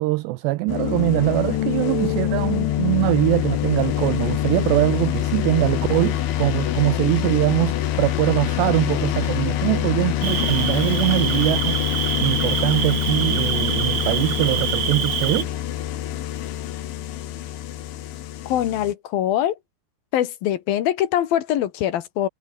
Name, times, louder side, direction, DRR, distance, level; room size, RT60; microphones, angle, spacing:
voice 1, 0.0-11.9 12.2-15.5, right 20 dB, 80° right, 2.7 m, -22 dB
sound 1, 0.7-18.9, left 12 dB, 85° left, 4.3 m, -25 dB
Cricket, 10.2-15.4, right 9 dB, 55° right, 1.9 m, -26 dB
voice 2, 18.4-19.6 20.1-22.3, left 11 dB, 60° left, 3.0 m, -23 dB
omnidirectional pair, 5.3 m